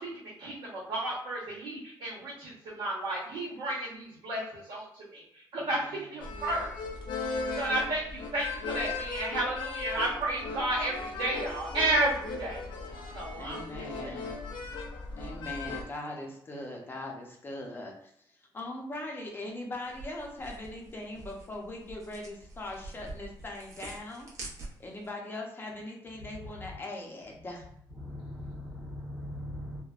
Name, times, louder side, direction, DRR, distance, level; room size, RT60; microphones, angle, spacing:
voice 1, 0.0-6.7 7.6-12.6 13.1-14.3, right 1 dB, 80° right, -8 dB, 1.0 m, -32 dB
voice 2, 5.7-6.2 13.4-14.3 15.2-18.1 18.5-24.3 24.8-27.6, left 1 dB, 25° left, 0 dB, 0.6 m, -40 dB
sound 1, 6.2-15.8, left 4 dB, 80° left, 0.5 m, -37 dB
sound 2, 19.8-25.1, right 2 dB, 40° right, 0.7 m, -46 dB
voice 3, 27.9-29.8, left 1 dB, ahead, -6 dB, 1.0 m, -40 dB
3.2 x 2.1 x 2.4 m, 0.70 s
cardioid pair, 140°, 8 cm